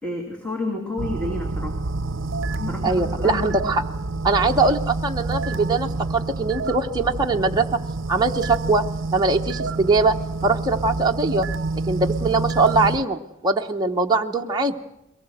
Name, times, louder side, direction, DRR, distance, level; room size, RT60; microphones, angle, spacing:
voice 1, 0.0-1.8 2.6-3.7 4.4-4.5, left 2 dB, 5° left, 0 dB, 2.7 m, -30 dB
sound 1, 1.0-13.0, right 3 dB, 65° right, 0.7 m, -28 dB
voice 2, 2.8-3.8 4.2-7.7 8.1-8.8 9.1-11.5 11.9-14.7, right 3 dB, 20° right, 1 dB, 0.9 m, -21 dB
22.5 x 19.0 x 7.9 m, 0.88 s
head